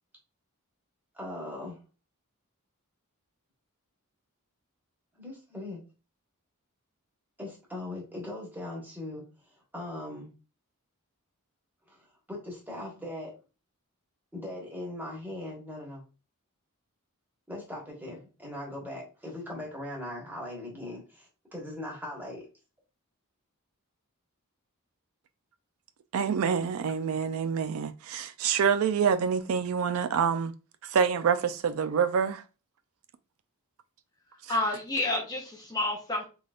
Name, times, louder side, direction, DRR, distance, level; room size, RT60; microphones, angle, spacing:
voice 1, 1.1-1.8 5.2-5.8 7.4-9.2 9.7-10.3 11.9-13.3 14.3-16.0 17.5-22.5, left 1 dB, 10° right, 1.3 m, -39 dB
voice 2, 26.1-30.5 30.9-32.4, right 6 dB, 65° right, 0.3 m, -26 dB
voice 3, 34.5-36.2, left 2 dB, 15° left, 0.6 m, -29 dB
3.9 x 3.4 x 2.4 m
head